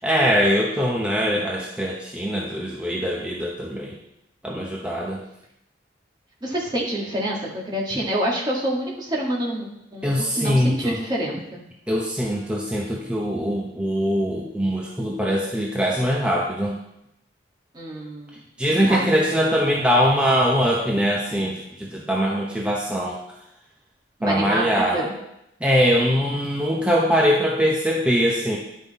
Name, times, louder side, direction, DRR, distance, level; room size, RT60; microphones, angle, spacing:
voice 1, 0.0-3.9 4.4-5.2 10.0-11.0 11.9-16.8 18.6-23.2 24.2-25.1 25.6-28.6, equal, 5° right, -2 dB, 0.8 m, -22 dB
voice 2, 6.4-11.6 17.7-18.4 18.8-19.1 24.2-25.1, right 1 dB, 25° right, -3 dB, 1.7 m, -27 dB
10.5 x 5.5 x 4.1 m, 0.82 s
head